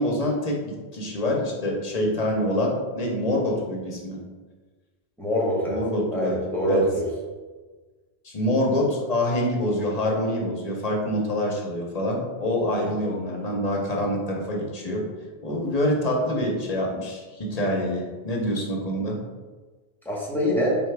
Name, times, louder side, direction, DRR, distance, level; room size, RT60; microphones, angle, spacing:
voice 1, 0.0-4.2 5.7-6.4 6.7-6.8 8.2-15.1 15.4-19.2, left 1 dB, 40° left, -1 dB, 0.7 m, -26 dB
voice 2, 5.2-5.8 6.1-7.1 20.0-20.8, equal, ahead, -5 dB, 1.0 m, -24 dB
4.2 x 3.3 x 3.3 m, 1.3 s
omnidirectional pair, 1.1 m